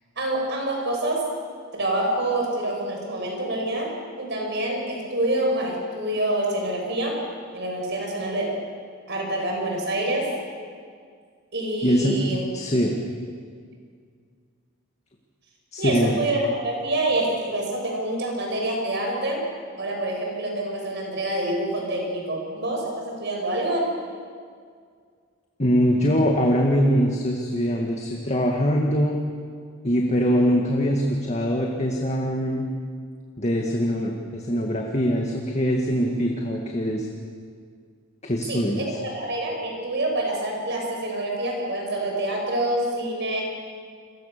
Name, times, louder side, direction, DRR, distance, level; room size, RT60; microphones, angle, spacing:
voice 1, 0.2-1.2 1.7-7.2 7.5-8.5 9.1-10.3 11.5-12.4 15.8-19.4 19.8-23.9 38.5-43.4, right 1 dB, 55° right, 0 dB, 7.1 m, -26 dB
voice 2, 11.8-12.2 12.5-12.9 15.7-16.2 25.6-29.2 29.8-32.7 33.4-37.1 38.2-39.0, equal, 30° left, 0 dB, 2.0 m, -23 dB
30.0 x 23.0 x 6.9 m, 2.1 s
head